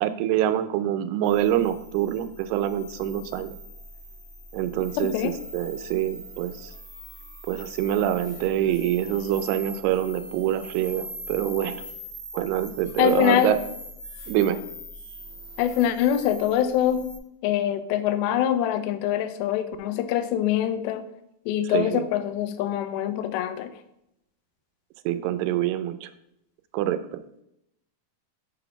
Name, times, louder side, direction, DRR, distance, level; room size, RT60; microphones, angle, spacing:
voice 1, 0.0-3.6 4.5-6.7 7.5-11.8 12.3-13.6 14.3-14.6 21.6-22.1 25.1-26.1 26.7-27.2, right 12 dB, 85° right, 11 dB, 2.6 m, -25 dB
sound 1, 1.2-17.2, left 1 dB, 50° left, 1.0 m, -42 dB
voice 2, 5.0-5.4 13.0-13.5 15.6-17.1 17.4-21.1 21.5-23.7, left 10 dB, 80° left, 10 dB, 2.3 m, -24 dB
7.3 x 4.0 x 5.7 m, 0.81 s
omnidirectional pair, 4.6 m